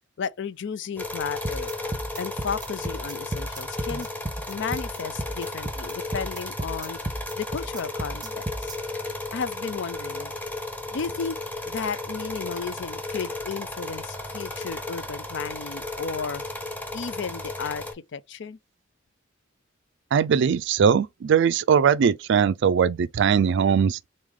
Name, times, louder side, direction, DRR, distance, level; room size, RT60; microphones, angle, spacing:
voice 1, 0.2-1.7 2.2-4.1 4.5-7.0 7.4-8.7 9.3-10.3 10.9-11.4 11.7-16.4 16.9-18.6, left 5 dB, 65° left, 0.5 m, -33 dB
sound 1, 1.0-17.9, left 2 dB, 10° left, 1.1 m, -34 dB
sound 2, 1.4-8.7, right 1 dB, 20° right, 0.7 m, -33 dB
voice 2, 20.1-24.0, right 7 dB, 65° right, 0.3 m, -20 dB
4.0 x 3.2 x 3.6 m
head